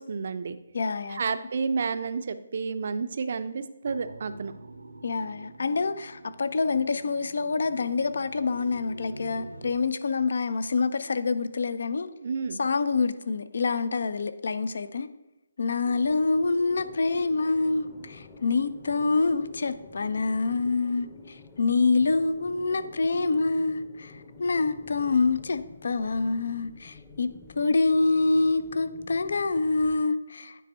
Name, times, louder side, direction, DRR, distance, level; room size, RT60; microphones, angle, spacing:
voice 1, 0.0-0.6 1.1-4.5 12.2-12.6, right 5 dB, 55° right, 12 dB, 0.5 m, -30 dB
voice 2, 0.7-1.2 5.0-12.1 12.6-15.1 15.6-24.1 24.4-30.6, left 3 dB, 65° left, 12 dB, 0.5 m, -26 dB
sound 1, 3.8-9.7, right 2 dB, 80° right, 0.7 m, -46 dB
sound 2, 15.8-30.0, left 4 dB, 20° left, 0.8 m, -49 dB
9.2 x 3.3 x 4.3 m, 1.0 s
figure-of-eight pair, 150°, 0 cm